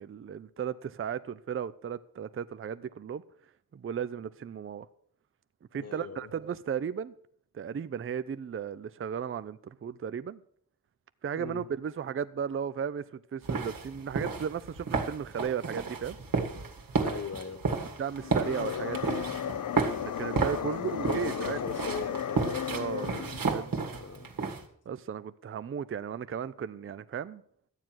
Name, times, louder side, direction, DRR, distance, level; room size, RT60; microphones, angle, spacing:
voice 1, 0.0-3.2 3.7-4.9 5.7-7.1 7.5-10.4 11.2-13.0 13.3-16.2 18.0-19.1 20.0-21.6 22.7-23.8 24.9-27.4, right 7 dB, 40° right, 0.4 m, -35 dB
voice 2, 5.7-6.3 11.3-11.7 17.0-17.8 20.8-22.5 23.9-24.3, left 4 dB, 45° left, 1.3 m, -39 dB
sound 1, 13.4-24.6, right 4 dB, 75° right, 1.8 m, -32 dB
sound 2, 18.1-23.5, left 9 dB, 65° left, 0.5 m, -35 dB
12.5 x 9.0 x 6.1 m
wide cardioid pair, 125°, 34 cm